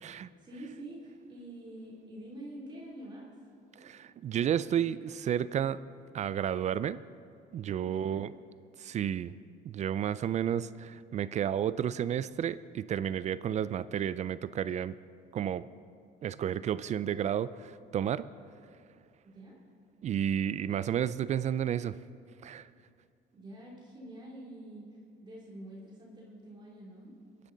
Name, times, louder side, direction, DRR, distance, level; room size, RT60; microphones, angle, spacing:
voice 1, 0.4-3.3 7.9-8.2 19.2-19.6 23.3-24.9 25.2-27.1, right 1 dB, 25° right, -4 dB, 2.9 m, -46 dB
voice 2, 3.8-5.8 6.1-7.0 7.5-8.3 8.8-9.3 9.6-14.9 15.3-15.7 16.2-18.3 20.0-22.0 22.4-22.7, right 9 dB, 45° right, 16 dB, 0.4 m, -31 dB
23.0 x 10.5 x 3.9 m, 2.3 s
cardioid pair, 110°, 17 cm